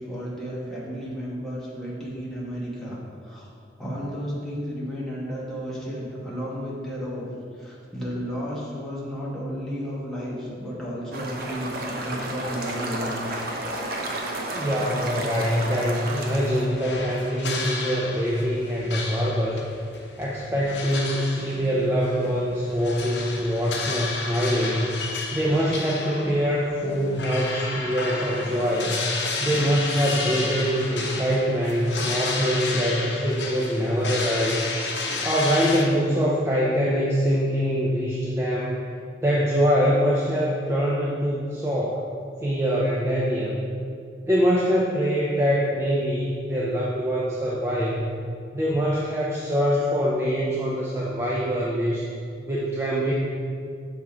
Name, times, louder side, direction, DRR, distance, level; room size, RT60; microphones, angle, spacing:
voice 1, 0.1-3.0 3.2-3.5 3.8-7.3 7.5-13.1, equal, ahead, -7 dB, 1.2 m, -33 dB
sound 1, 11.1-16.7, right 1 dB, 55° right, 0.7 m, -31 dB
voice 2, 14.5-19.6 20.2-24.9 25.3-29.0 29.4-34.6 35.2-38.8 39.2-42.1 42.4-43.6 44.2-48.1 48.5-52.1 52.5-53.1, equal, 15° right, -5 dB, 0.5 m, -24 dB
sound 2, 16.2-35.9, left 3 dB, 70° left, 0.7 m, -32 dB
6.3 x 3.6 x 4.3 m, 2.3 s
head